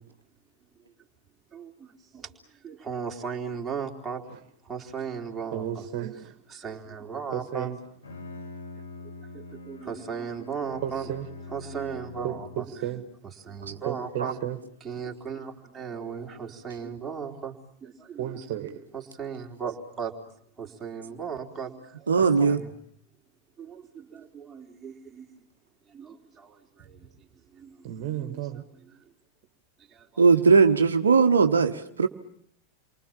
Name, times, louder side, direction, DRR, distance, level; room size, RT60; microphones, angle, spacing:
voice 1, 1.5-2.3 2.6-4.2 4.7-5.9 6.5-7.7 9.3-11.1 11.5-12.6 13.5-14.4 14.9-17.5 17.8-18.2 18.9-20.1 20.6-22.7 23.6-25.3 25.9-27.0 27.5-27.8 29.9-30.1, right 6 dB, 15° right, -1 dB, 3.7 m, -36 dB
voice 2, 5.5-6.4 7.3-7.8 10.8-11.3 12.2-13.1 13.8-14.6 18.2-18.8 27.8-28.6, right 11 dB, 45° right, 8 dB, 2.0 m, -33 dB
Bowed string instrument, 7.8-12.9, left 3 dB, 70° left, 3.8 m, -44 dB
voice 3, 22.1-22.6 30.2-32.1, right 5 dB, 70° right, 6 dB, 1.2 m, -19 dB
29.0 x 24.0 x 7.3 m, 0.66 s
figure-of-eight pair, 90°, 0 cm